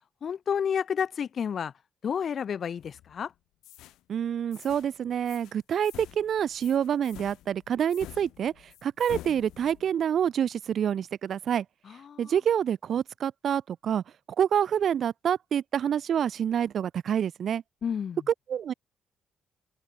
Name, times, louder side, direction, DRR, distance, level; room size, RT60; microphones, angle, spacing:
voice 1, 0.2-1.7 2.0-3.3 11.9-12.3 17.8-18.2, left 7 dB, 55° left, 1.7 m, -30 dB
sound 1, 2.8-3.2 3.6-4.0 4.5-4.9 5.3-5.5 5.8-9.9, left 15 dB, 90° left, 1.6 m, -47 dB
voice 2, 4.1-8.5 8.8-11.6 12.2-14.0 14.4-17.6 18.3-18.7, right 9 dB, 60° right, 0.6 m, -27 dB
open air
cardioid pair, 90°, 0 cm